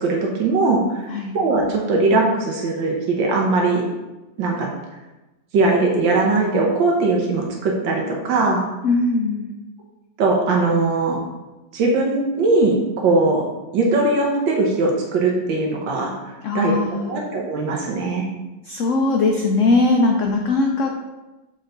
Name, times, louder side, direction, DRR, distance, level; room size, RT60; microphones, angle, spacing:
voice 1, 0.0-1.1 1.3-3.8 4.4-4.7 5.5-8.6 10.2-11.2 11.7-13.4 13.7-16.1 16.5-18.3, right 3 dB, 90° right, 0 dB, 1.6 m, -20 dB
voice 2, 8.8-9.5 16.4-17.2 18.6-21.0, left 3 dB, 70° left, 2 dB, 0.7 m, -20 dB
6.7 x 4.2 x 3.8 m, 1.1 s
omnidirectional pair, 2.0 m